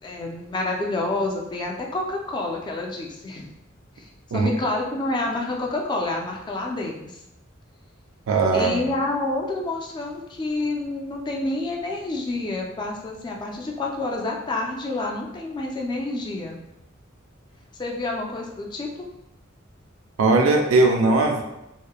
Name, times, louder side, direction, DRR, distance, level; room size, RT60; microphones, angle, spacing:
voice 1, 0.0-3.5 4.0-4.1 4.3-7.2 8.5-16.6 17.8-19.0, left 2 dB, 20° left, 0 dB, 0.3 m, -28 dB
voice 2, 8.3-8.9 20.2-21.4, right 3 dB, 90° right, 2 dB, 0.4 m, -19 dB
2.8 x 2.1 x 2.2 m, 0.90 s
head